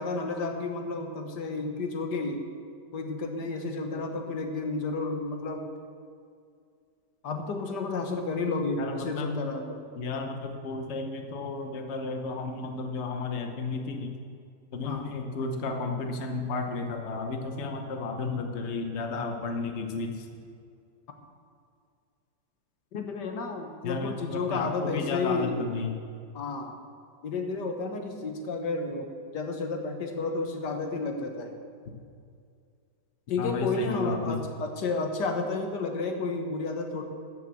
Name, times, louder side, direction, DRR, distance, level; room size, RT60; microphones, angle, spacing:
voice 1, 0.0-2.4 2.9-5.6 7.2-9.8 14.8-15.1 22.9-25.6 26.3-26.8 27.2-31.5 33.3-37.0, left 3 dB, 80° left, 5 dB, 1.8 m, -31 dB
voice 2, 8.8-9.4 10.0-14.1 14.7-20.3 23.8-26.0 33.4-34.4, left 3 dB, 45° left, 4 dB, 1.2 m, -33 dB
13.5 x 6.8 x 7.7 m, 2.3 s
omnidirectional pair, 1.8 m